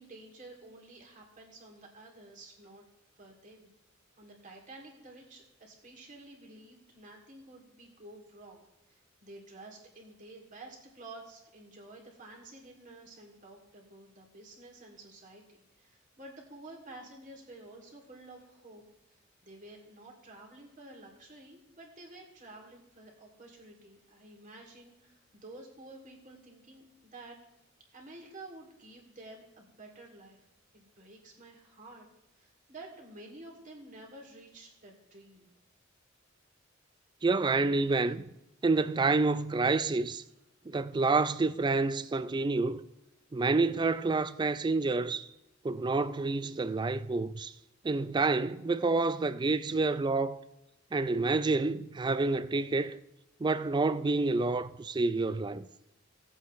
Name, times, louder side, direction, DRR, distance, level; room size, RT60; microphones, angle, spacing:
voice 1, 0.0-2.8 3.2-3.7 4.2-18.8 19.1-27.4 27.9-30.5 30.7-32.1 32.3-35.5, right 2 dB, 40° right, 2.5 m, -51 dB
voice 2, 37.2-38.2 38.6-40.2 40.7-42.8 43.3-45.3 45.6-47.5 47.8-50.4 50.9-53.0 53.4-55.7, right 3 dB, 20° right, 0.4 m, -28 dB
17.5 x 8.0 x 3.1 m
head